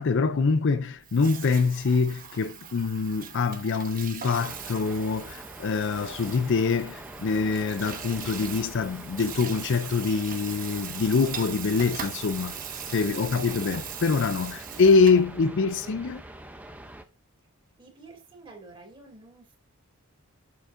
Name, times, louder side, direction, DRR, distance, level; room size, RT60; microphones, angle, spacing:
voice 1, 0.0-12.6 12.9-16.2, left 4 dB, 55° left, 0.5 m, -24 dB
Water tap faucet / Sink (filling or washing), 1.0-15.3, right 8 dB, 40° right, 1.1 m, -40 dB
sound 1, 4.3-17.0, right 1 dB, 5° right, 0.6 m, -44 dB
voice 2, 13.1-13.8 14.7-16.1 17.8-19.6, right 2 dB, 25° right, 2.7 m, -47 dB
8.2 x 6.7 x 2.6 m
head